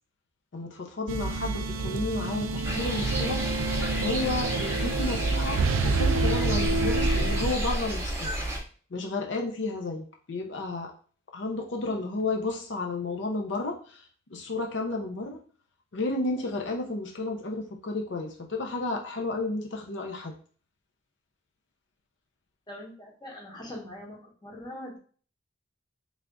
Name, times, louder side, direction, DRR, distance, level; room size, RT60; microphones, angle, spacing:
voice 1, 0.5-3.4 4.0-8.3 8.9-10.9 11.3-15.4 15.9-20.3, left 2 dB, 65° left, 2 dB, 0.5 m, -32 dB
sound 1, 1.1-7.5, right 3 dB, 85° right, 0.4 m, -28 dB
sound 2, 2.6-8.6, right 1 dB, 15° right, 0.7 m, -31 dB
voice 2, 22.7-25.0, left 1 dB, 20° left, -1 dB, 0.8 m, -42 dB
3.3 x 2.4 x 3.8 m, 0.42 s
head